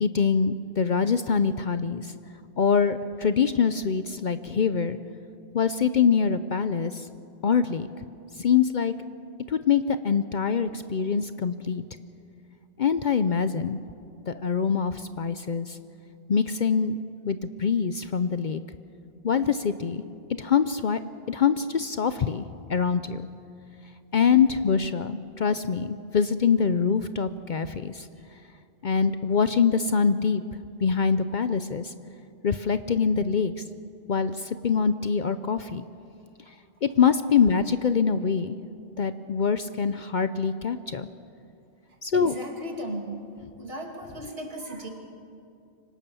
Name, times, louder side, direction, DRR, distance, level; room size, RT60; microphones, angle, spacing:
voice 1, 0.0-2.1 2.6-5.0 5.5-7.1 7.4-7.9 8.4-8.9 9.5-11.8 12.8-13.8 14.3-15.8 16.3-17.0 17.2-18.6 19.2-20.0 20.4-21.0 21.3-23.2 24.1-28.1 28.8-30.4 30.8-31.9 32.4-33.5 34.1-35.8 36.8-38.6 39.0-41.1 42.0-42.4, left 6 dB, 50° left, 12 dB, 0.7 m, -24 dB
voice 2, 42.1-43.2 43.6-44.9, right 1 dB, 65° right, 2 dB, 2.7 m, -36 dB
25.0 x 18.0 x 7.0 m, 2.6 s
omnidirectional pair, 1.1 m